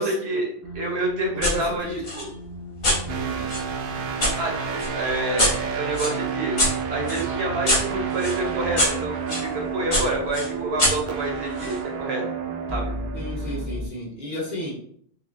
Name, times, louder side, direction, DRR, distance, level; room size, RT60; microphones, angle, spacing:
voice 1, 0.0-1.9 2.1-2.3 4.4-6.6 6.9-12.2 12.7-12.9, right 2 dB, 85° right, 0 dB, 1.2 m, -28 dB
sound 1, 0.6-13.9, equal, 20° right, 0.5 m, -37 dB
voice 2, 1.3-2.0 3.1-3.5 13.1-14.7, equal, 45° left, -3 dB, 1.2 m, -31 dB
sound 2, 1.4-1.6 2.0-4.3 4.8-9.5 9.9-11.8, left 1 dB, 65° left, 1.4 m, -26 dB
sound 3, 3.1-13.7, right 7 dB, 65° right, 0.7 m, -31 dB
5.5 x 2.1 x 2.5 m, 0.62 s
omnidirectional pair, 1.0 m